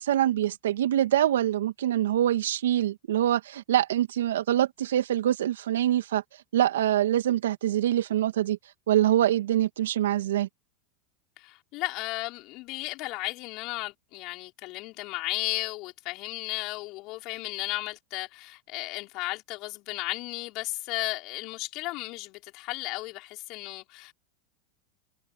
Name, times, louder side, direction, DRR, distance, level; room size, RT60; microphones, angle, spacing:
voice 1, 0.0-6.2 6.5-8.6 8.9-10.5, right 12 dB, 80° right, 2.2 m, -24 dB
voice 2, 11.4-24.1, left 21 dB, 50° left, 5.5 m, -34 dB
hypercardioid pair, 100°, 0 cm